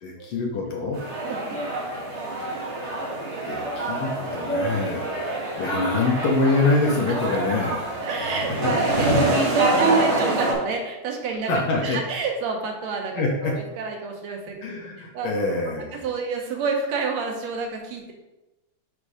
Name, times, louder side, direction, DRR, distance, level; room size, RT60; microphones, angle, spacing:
voice 1, 0.0-1.0 3.5-5.1 5.6-7.9 8.6-9.0 11.5-12.0 13.2-13.5 14.6-16.0, left 3 dB, 65° left, 0 dB, 1.7 m, -25 dB
sound 1, 0.9-10.5, right 2 dB, 45° right, 0.8 m, -25 dB
voice 2, 1.2-1.6 2.5-2.7 3.2-3.5 7.1-7.4 8.0-11.5 11.8-15.3 15.9-18.1, right 4 dB, 75° right, 2 dB, 1.9 m, -30 dB
6.6 x 3.6 x 4.8 m, 1.0 s
omnidirectional pair, 3.3 m